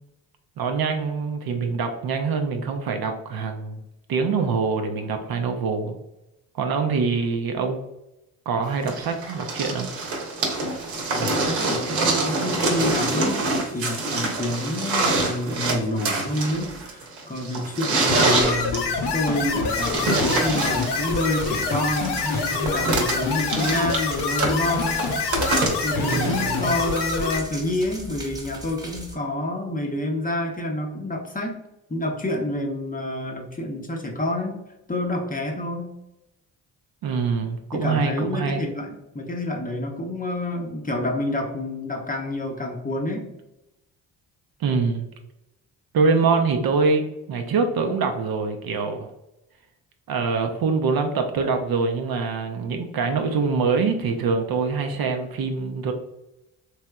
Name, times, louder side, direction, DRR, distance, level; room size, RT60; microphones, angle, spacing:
voice 1, 0.6-3.8 4.1-6.0 6.6-7.8 8.5-9.9 25.9-26.7 37.0-38.6 44.6-45.1 45.9-49.1 50.1-55.9, right 4 dB, 50° right, 5 dB, 0.6 m, -24 dB
sound 1, 8.9-27.0 28.0-28.1, right 2 dB, 70° right, 1.0 m, -26 dB
voice 2, 11.1-25.1 25.8-31.6 31.9-34.6 34.9-35.9 37.7-43.3, left 1 dB, 20° left, 1 dB, 0.7 m, -28 dB
sound 2, 18.1-27.4, left 5 dB, 60° left, 0.7 m, -26 dB
sound 3, 18.3-29.1, right 2 dB, 10° right, 0.9 m, -39 dB
3.2 x 2.9 x 2.2 m, 0.90 s
hypercardioid pair, 45°, 47 cm